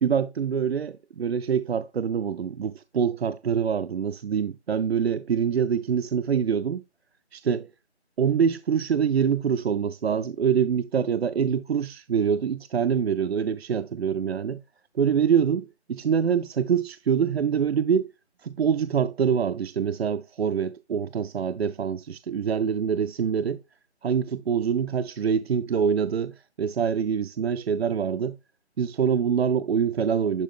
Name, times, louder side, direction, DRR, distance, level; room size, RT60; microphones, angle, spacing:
voice 1, 0.0-6.8 7.3-7.7 8.2-14.6 15.0-18.1 18.4-23.6 24.0-28.4 28.8-30.4, right 7 dB, 65° right, 0.5 m, -25 dB
10.5 x 5.1 x 3.5 m
figure-of-eight pair, 165°, 34 cm